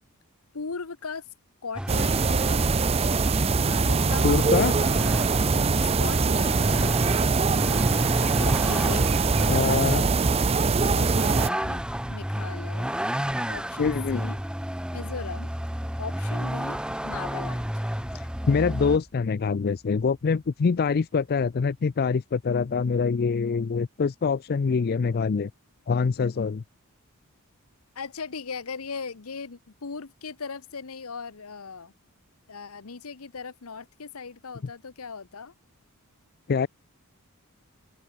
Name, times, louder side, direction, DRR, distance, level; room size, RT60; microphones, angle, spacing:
voice 1, 0.5-1.2 1.6-2.9 3.5-5.0 5.8-7.4 8.4-9.1 9.6-10.1 10.9-11.8 12.1-12.9 13.5-14.4 14.9-15.5 16.0-16.8 17.0-17.7 28.0-31.9 32.5-35.5, left 5 dB, 75° left, 1.0 m, -38 dB
Vehicle, 1.8-19.0, equal, 5° right, 1.5 m, -32 dB
sound 1, 1.9-11.5, right 4 dB, 30° right, 0.5 m, -23 dB
voice 2, 4.2-4.7 9.5-10.0 13.8-14.2 18.1-25.5 25.9-26.6 36.5-36.7, left 5 dB, 45° left, 0.4 m, -25 dB
sound 2, 22.2-23.2, equal, 25° left, 7.8 m, -55 dB
open air
head